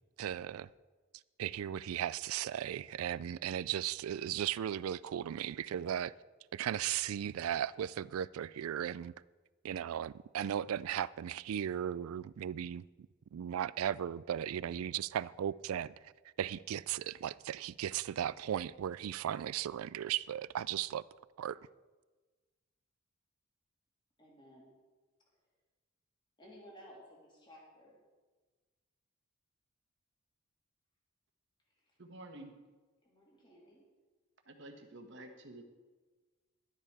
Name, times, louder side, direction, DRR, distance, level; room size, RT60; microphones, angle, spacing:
voice 1, 0.2-0.7 1.4-6.1 6.5-9.1 9.6-12.8 13.3-16.1 16.4-21.0 21.4-21.6, right 10 dB, 90° right, 0.3 m, -36 dB
voice 2, 24.2-24.7 26.4-28.0 31.8-31.9 33.0-33.8, equal, 20° left, 2.7 m, -57 dB
voice 3, 32.0-32.6 34.5-35.6, right 1 dB, 60° right, 1.3 m, -50 dB
12.0 x 10.0 x 4.7 m
head